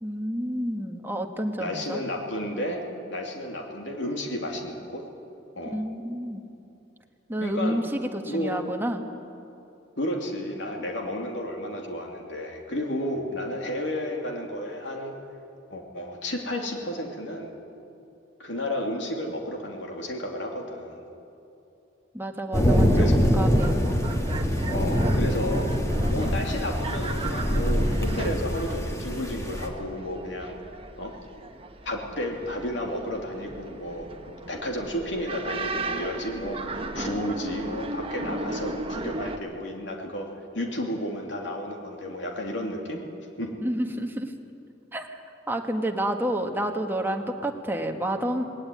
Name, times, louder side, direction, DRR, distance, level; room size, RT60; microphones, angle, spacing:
voice 1, 0.0-2.0 5.7-6.4 7.3-9.0 22.1-24.1 43.6-44.3 44.9-45.2 45.5-48.5, right 1 dB, 10° right, 4 dB, 1.5 m, -29 dB
voice 2, 1.6-2.8 3.1-5.0 5.5-5.8 7.4-7.8 8.3-8.6 10.0-15.1 15.7-17.5 18.4-21.0 22.9-23.2 24.7-25.7 26.1-30.6 31.0-31.2 31.8-40.3 40.5-43.0 43.4-43.5, left 1 dB, 75° left, 1 dB, 3.0 m, -32 dB
sound 1, 22.5-29.7, equal, 15° left, 2.1 m, -24 dB
sound 2, 22.7-39.4, right 2 dB, 30° right, 1.2 m, -37 dB
19.5 x 18.0 x 9.5 m, 2.8 s
head